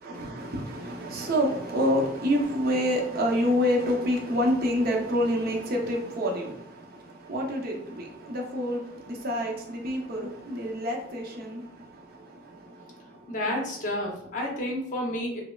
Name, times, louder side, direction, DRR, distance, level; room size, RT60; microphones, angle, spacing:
voice 1, 0.0-6.8 7.3-11.6, equal, 55° right, 0 dB, 0.7 m, -27 dB
voice 2, 13.3-15.4, left 1 dB, 45° left, -1 dB, 0.9 m, -30 dB
5.0 x 2.0 x 2.3 m, 0.73 s
head